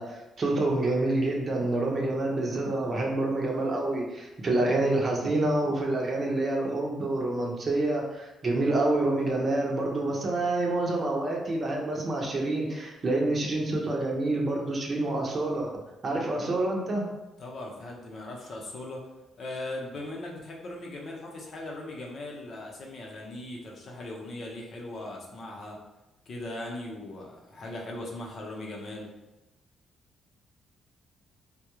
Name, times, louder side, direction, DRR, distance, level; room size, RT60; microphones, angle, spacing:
voice 1, 0.0-17.1, right 2 dB, 40° right, -1 dB, 0.7 m, -27 dB
voice 2, 17.4-19.0 19.4-25.8 26.3-29.1, left 1 dB, 55° left, -1 dB, 0.7 m, -39 dB
3.6 x 2.3 x 3.0 m, 1.0 s
cardioid pair, 90°, 0 cm